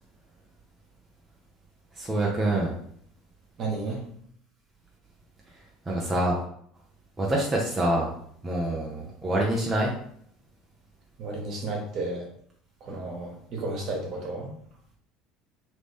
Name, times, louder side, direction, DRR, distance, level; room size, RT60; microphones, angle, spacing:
voice 1, 2.0-2.7 5.9-6.4 7.2-8.1 8.4-9.9, right 1 dB, 20° right, -3 dB, 1.1 m, -26 dB
voice 2, 3.6-4.0 11.2-12.2 12.8-14.5, right 2 dB, 50° right, -1 dB, 1.6 m, -32 dB
3.9 x 3.3 x 3.6 m, 0.65 s
hypercardioid pair, 65°, 0 cm